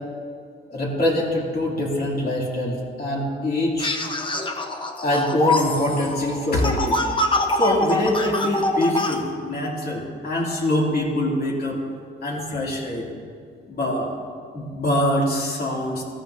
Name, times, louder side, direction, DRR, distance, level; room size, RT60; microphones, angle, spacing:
voice 1, 0.7-3.9 5.0-7.0 7.5-11.8 12.2-13.1 13.7-14.1 14.5-16.0, left 1 dB, 50° left, -3 dB, 3.0 m, -24 dB
sound 1, 3.8-9.2, left 2 dB, 25° left, 1.1 m, -24 dB
15.0 x 13.0 x 2.8 m, 2.1 s
cardioid pair, 90°, 20 cm